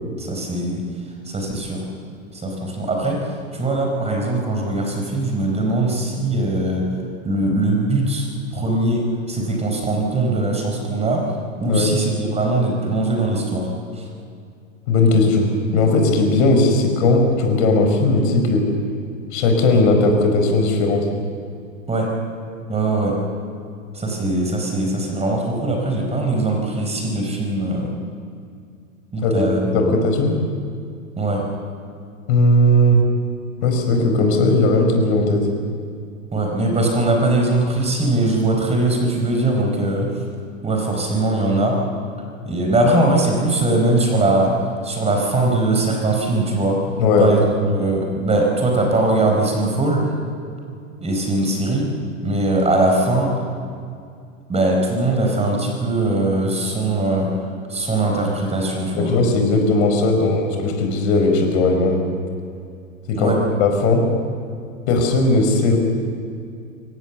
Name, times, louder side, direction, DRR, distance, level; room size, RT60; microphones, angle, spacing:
voice 1, 0.2-0.8 1.3-1.9 2.3-6.9 7.2-8.3 8.5-11.3 11.6-14.1 21.9-22.1 22.7-23.2 23.9-27.9 29.1-30.0 31.2-31.5 36.3-40.1 40.6-41.8 42.5-44.6 44.8-46.9 47.2-50.1 51.0-51.9 52.2-53.3 54.5-57.3 57.7-59.1 63.1-63.4, right 2 dB, 15° right, 1 dB, 4.4 m, -21 dB
voice 2, 14.9-18.7 19.3-21.1 29.2-30.4 32.3-33.0 33.6-35.5 47.0-47.3 59.0-62.0 63.1-63.3 63.6-64.1 64.9-65.8, left 2 dB, 55° left, 4 dB, 5.0 m, -17 dB
23.0 x 17.5 x 7.1 m, 2.4 s
hypercardioid pair, 110°, 40 cm